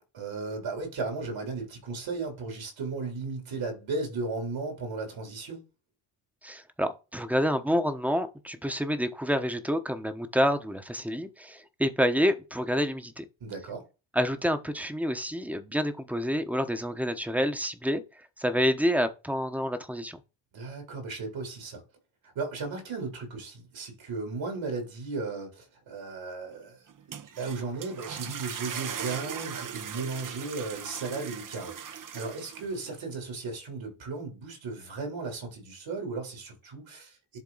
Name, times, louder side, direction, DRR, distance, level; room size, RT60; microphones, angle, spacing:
voice 1, 0.1-5.6 13.4-13.9 20.5-21.8 22.4-37.4, right 3 dB, 70° right, 3.4 m, -35 dB
voice 2, 6.4-13.2 14.1-20.2, equal, 5° right, 1.0 m, -28 dB
sound 1, 26.9-32.9, right 8 dB, 40° right, 0.8 m, -39 dB
10.5 x 3.7 x 4.0 m
cardioid pair, 85°, 48 cm